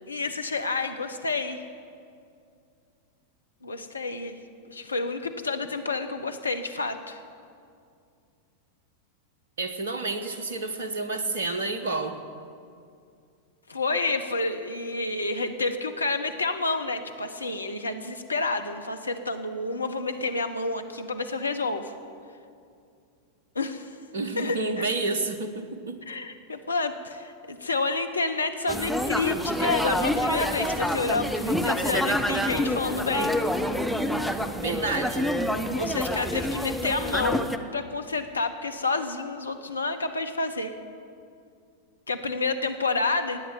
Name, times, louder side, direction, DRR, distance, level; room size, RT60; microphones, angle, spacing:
voice 1, 0.1-1.6 3.6-4.4 4.6-7.2 13.7-21.9 23.5-23.9 24.3-24.9 26.1-33.4 35.7-37.5 37.7-40.7 42.1-43.4, left 3 dB, 80° left, 7 dB, 1.0 m, -29 dB
voice 2, 9.6-12.2 24.1-26.0 34.6-35.3, right 3 dB, 60° right, 8 dB, 1.1 m, -30 dB
sound 1, 28.7-37.6, equal, ahead, 0.8 m, -27 dB
17.5 x 9.4 x 7.5 m, 2.4 s
figure-of-eight pair, 90°, 0 cm